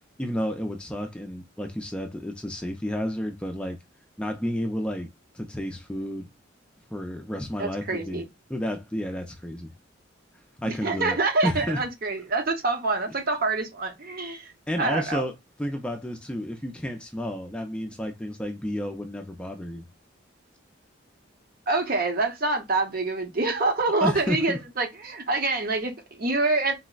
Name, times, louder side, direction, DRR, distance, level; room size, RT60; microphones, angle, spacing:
voice 1, 0.2-3.8 4.2-6.3 6.9-8.2 8.5-9.7 10.6-11.2 11.4-11.8 14.7-15.3 15.6-19.8 24.0-24.6, equal, 5° left, 0.4 m, -31 dB
voice 2, 7.6-8.3 10.6-14.5 14.8-15.2 21.7-26.7, right 3 dB, 50° right, 0.7 m, -26 dB
3.9 x 2.1 x 2.2 m
head